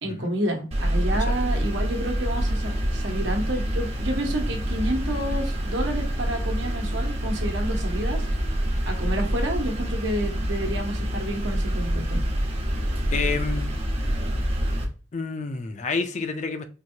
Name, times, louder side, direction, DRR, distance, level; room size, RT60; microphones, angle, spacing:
voice 1, 0.0-8.3 8.9-12.2, right 1 dB, 70° right, 1.1 m, -29 dB
sound 1, 0.7-14.8, equal, 30° right, 0.9 m, -26 dB
voice 2, 13.1-13.7 15.1-16.7, left 4 dB, 40° left, 0.4 m, -29 dB
4.5 x 2.6 x 2.7 m
head